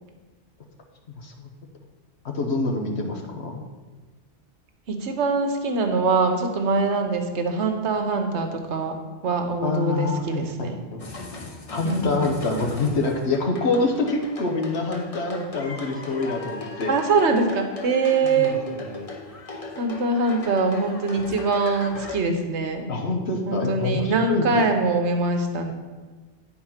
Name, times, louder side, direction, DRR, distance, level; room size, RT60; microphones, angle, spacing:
voice 1, 1.2-1.5 2.2-3.6 9.6-11.0 11.7-16.9 18.2-19.1 22.9-24.6, left 3 dB, 70° left, 2 dB, 1.2 m, -26 dB
voice 2, 4.9-10.8 11.8-12.3 16.9-18.6 19.8-22.9 23.4-25.7, right 3 dB, 75° right, 5 dB, 1.2 m, -23 dB
sound 1, 11.0-22.2, left 3 dB, 35° left, 0.9 m, -38 dB
9.2 x 4.3 x 5.7 m, 1.3 s
omnidirectional pair, 1.2 m